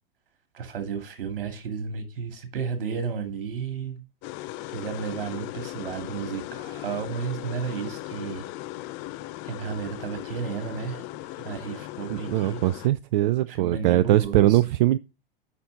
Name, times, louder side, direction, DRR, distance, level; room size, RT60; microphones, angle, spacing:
voice 1, 0.5-4.0 4.7-8.4 9.4-11.0 11.4-12.6 13.5-14.6, right 6 dB, 65° right, 2.5 m, -33 dB
sound 1, 4.2-12.9, left 17 dB, 40° left, 0.8 m, -38 dB
voice 2, 12.1-15.0, right 15 dB, 50° right, 0.5 m, -21 dB
8.5 x 5.9 x 4.0 m
figure-of-eight pair, 95°, 29 cm